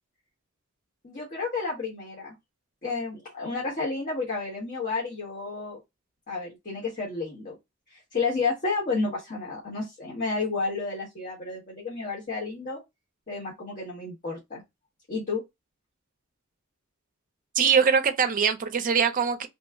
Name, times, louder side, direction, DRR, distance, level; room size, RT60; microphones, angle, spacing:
voice 1, 1.0-2.3 2.8-5.8 6.3-7.6 8.1-12.8 13.3-14.6 15.1-15.4, left 4 dB, 40° left, 1.1 m, -31 dB
voice 2, 17.6-19.5, right 6 dB, 40° right, 0.5 m, -22 dB
3.1 x 2.0 x 3.4 m
head